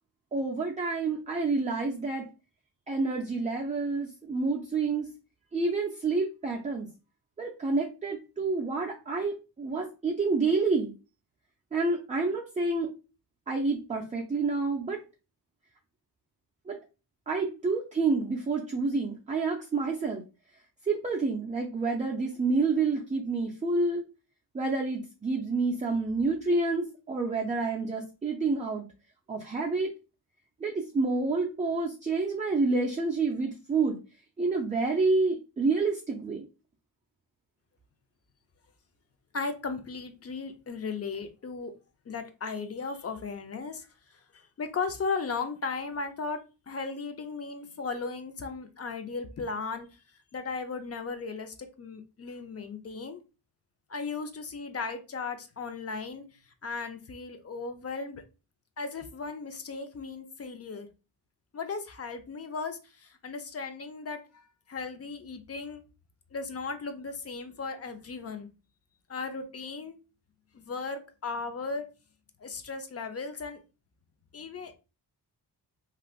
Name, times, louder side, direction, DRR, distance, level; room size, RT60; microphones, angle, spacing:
voice 1, 0.3-2.2 2.9-5.1 5.5-6.9 7.4-10.9 11.7-12.9 13.5-15.0 16.7-16.8 17.3-20.2 20.8-24.0 24.5-28.8 29.3-29.9 30.6-34.0 34.4-36.5, right 3 dB, 20° right, -1 dB, 0.4 m, -28 dB
voice 2, 39.3-41.7 42.1-49.9 50.3-53.2 53.9-56.2 56.6-58.2 58.8-60.9 61.5-65.8 66.3-68.5 69.1-70.0 70.5-71.9 72.4-73.6 74.3-74.7, left 4 dB, 35° left, 7 dB, 0.5 m, -36 dB
3.2 x 2.5 x 2.3 m, 0.31 s
wide cardioid pair, 110°, 41 cm